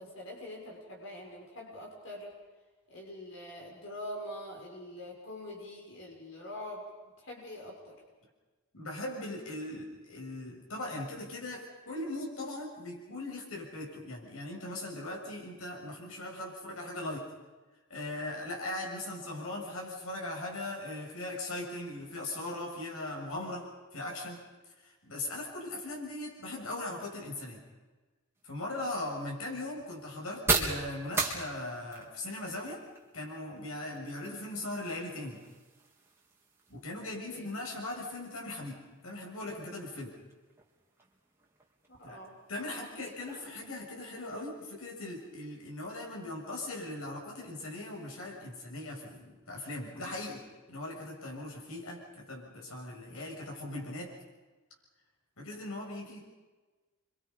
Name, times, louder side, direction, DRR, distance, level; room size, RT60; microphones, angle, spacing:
voice 1, 0.0-2.3 2.9-6.8 7.2-8.0 37.0-37.5 41.9-42.4 42.6-43.4, left 1 dB, 65° left, -1 dB, 6.4 m, -44 dB
voice 2, 8.7-17.3 17.9-24.4 24.8-27.6 28.4-32.8 33.1-35.4 36.7-40.1 42.0-42.2 42.5-50.4 50.7-54.1 55.4-56.2, left 1 dB, 85° left, -1 dB, 7.0 m, -39 dB
sound 1, 28.3-45.9, right 4 dB, 10° right, 3.6 m, -41 dB
29.0 x 25.5 x 5.6 m, 1.3 s
head